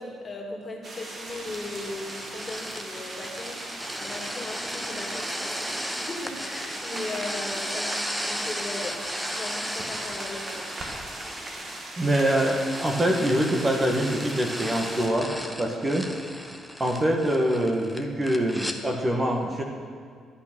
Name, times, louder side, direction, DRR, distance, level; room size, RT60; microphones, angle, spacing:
voice 1, 0.0-9.0 9.3-10.7 15.7-15.8, left 2 dB, 35° left, 0 dB, 2.4 m, -38 dB
sound 1, 0.8-15.1, right 2 dB, 45° right, 2.3 m, -39 dB
sound 2, 1.3-18.8, equal, 5° right, 1.1 m, -35 dB
voice 2, 12.0-15.3 15.6-16.1 16.8-19.6, right 1 dB, 25° right, 1 dB, 1.6 m, -24 dB
13.0 x 8.7 x 6.2 m, 2.2 s
cardioid pair, 90°, 0 cm